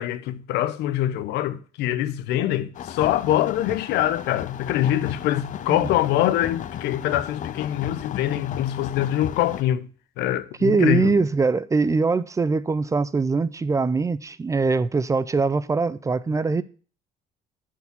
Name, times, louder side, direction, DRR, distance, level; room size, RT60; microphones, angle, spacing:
voice 1, 0.0-9.9 10.2-11.2, left 12 dB, 90° left, 0.6 m, -24 dB
sound 1, 2.7-9.6, left 10 dB, 50° left, 0.5 m, -35 dB
voice 2, 10.6-16.6, right 4 dB, 20° right, 0.4 m, -22 dB
8.0 x 4.7 x 7.1 m
cardioid pair, 110°, 17 cm